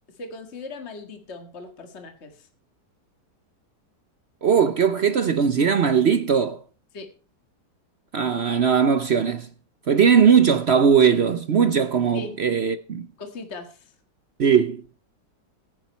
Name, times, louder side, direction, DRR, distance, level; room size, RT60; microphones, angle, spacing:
voice 1, 0.2-2.5 6.9-7.1 12.1-12.3 13.2-13.9, left 3 dB, 40° left, 2.0 m, -38 dB
voice 2, 4.4-6.6 8.1-9.5 9.9-13.1 14.4-14.8, right 7 dB, 55° right, 0.7 m, -19 dB
15.0 x 10.5 x 4.4 m
omnidirectional pair, 1.9 m